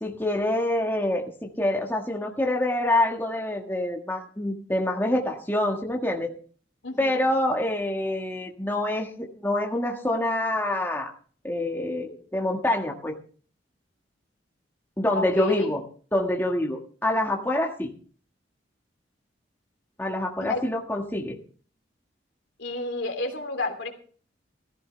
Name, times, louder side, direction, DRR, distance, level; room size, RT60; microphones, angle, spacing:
voice 1, 0.0-6.3 7.0-11.1 11.4-13.1 15.0-15.8 16.1-17.9 20.0-21.4, left 1 dB, 10° left, 1 dB, 1.6 m, -26 dB
voice 2, 6.8-7.2 15.1-15.7 20.4-20.6 22.6-23.9, left 2 dB, 70° left, 5 dB, 2.9 m, -30 dB
15.0 x 14.5 x 3.3 m, 0.43 s
head